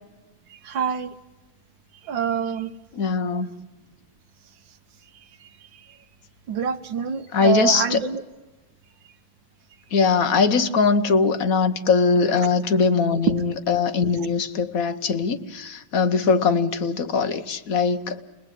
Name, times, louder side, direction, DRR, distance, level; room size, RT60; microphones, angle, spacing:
voice 1, 0.5-1.1 2.1-2.7 5.4-5.5 6.5-8.2 12.4-12.5, right 8 dB, 65° right, 9 dB, 1.8 m, -26 dB
voice 2, 3.0-3.5 7.3-8.0 9.9-18.2, left 5 dB, 50° left, 9 dB, 1.3 m, -21 dB
29.5 x 20.0 x 9.2 m, 1.2 s
omnidirectional pair, 2.3 m